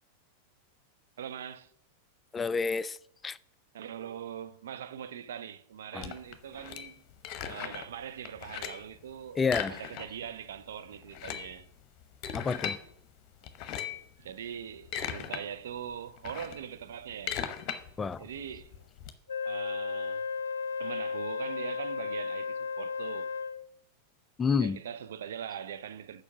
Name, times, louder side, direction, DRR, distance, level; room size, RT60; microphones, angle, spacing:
voice 1, 1.2-1.7 3.7-7.0 7.4-11.7 14.2-17.4 18.2-18.9 19.4-20.3 20.8-23.3 24.6-26.2, right 8 dB, 60° right, 0.5 m, -42 dB
voice 2, 2.3-3.0 3.2-3.4 5.9-6.1 9.4-9.8 12.3-12.8 18.0-18.2 24.4-24.8, left 5 dB, 15° left, 0.3 m, -29 dB
sound 1, 6.0-7.9 8.2-8.9 9.4-10.3 10.6-10.7 11.0-12.8 13.4-14.1 14.6-15.4 15.8-19.1, left 9 dB, 40° left, 0.8 m, -38 dB
Wind instrument woodwind instrument, 19.3-23.7, left 5 dB, 70° left, 0.5 m, -34 dB
7.0 x 5.4 x 7.1 m
figure-of-eight pair, 90°, 0 cm